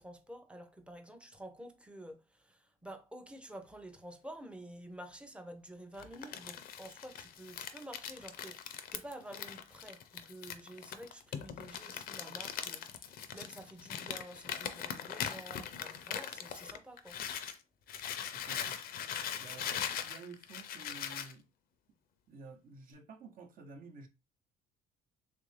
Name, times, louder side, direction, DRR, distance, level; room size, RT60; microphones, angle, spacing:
voice 1, 0.0-17.3, right 1 dB, 5° right, 0.6 m, -50 dB
Crumpling crinkling, 6.0-17.6 17.9-21.3, left 9 dB, 60° left, 0.5 m, -41 dB
voice 2, 18.3-18.8 19.4-21.5 22.3-24.1, right 4 dB, 55° right, 0.8 m, -52 dB
3.2 x 2.5 x 3.2 m
cardioid pair, 110°, 17 cm